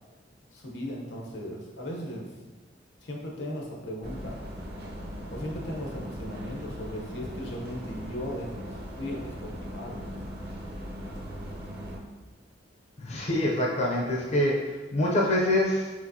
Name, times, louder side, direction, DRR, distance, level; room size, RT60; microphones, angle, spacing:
voice 1, 0.5-2.3 3.0-4.4 5.3-10.0, equal, 75° left, 0 dB, 0.9 m, -37 dB
sound 1, 4.0-12.0, equal, 60° right, 0.8 m, -39 dB
voice 2, 13.0-15.9, left 1 dB, 35° left, -3 dB, 0.5 m, -25 dB
4.9 x 3.6 x 2.7 m, 1.2 s
head